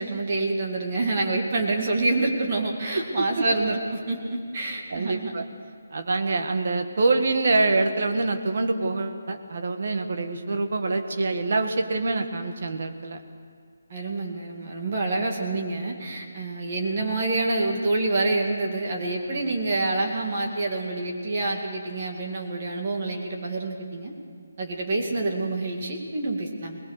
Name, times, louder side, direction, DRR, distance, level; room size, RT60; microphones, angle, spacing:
voice 1, 0.0-5.3 13.9-24.1 24.6-26.8, right 2 dB, 30° right, 1 dB, 2.3 m, -27 dB
voice 2, 2.9-3.4 4.9-5.4 5.9-13.2, right 3 dB, 45° right, 6 dB, 1.7 m, -25 dB
22.5 x 20.5 x 6.7 m, 2.2 s
hypercardioid pair, 180°, 0 cm